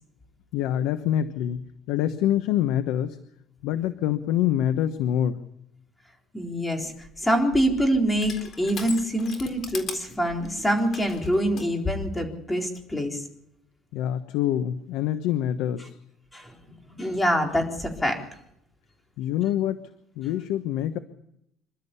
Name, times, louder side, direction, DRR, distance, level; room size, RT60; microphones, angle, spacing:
voice 1, 0.5-3.2 3.6-5.4 13.9-16.0 19.2-19.8 20.2-21.0, left 11 dB, 80° left, 10 dB, 1.1 m, -26 dB
voice 2, 6.3-6.9 7.2-13.2 16.3-16.6 17.0-18.2, equal, 10° left, 2 dB, 4.0 m, -25 dB
Crushing, 6.8-11.7, left 5 dB, 40° left, 3.9 m, -41 dB
27.0 x 12.5 x 8.4 m, 0.78 s
cardioid pair, 130°, 0 cm